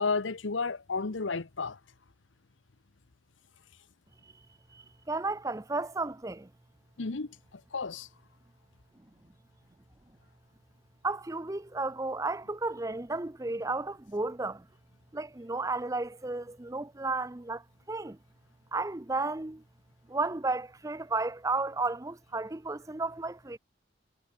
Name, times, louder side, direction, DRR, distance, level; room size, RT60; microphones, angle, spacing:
voice 1, 0.0-1.8 7.0-8.1, left 4 dB, 75° left, 1.0 m, -32 dB
voice 2, 4.7-6.5 11.0-14.7 15.1-17.6 17.9-18.2 18.7-19.6 20.1-23.6, right 3 dB, 15° right, 0.6 m, -33 dB
head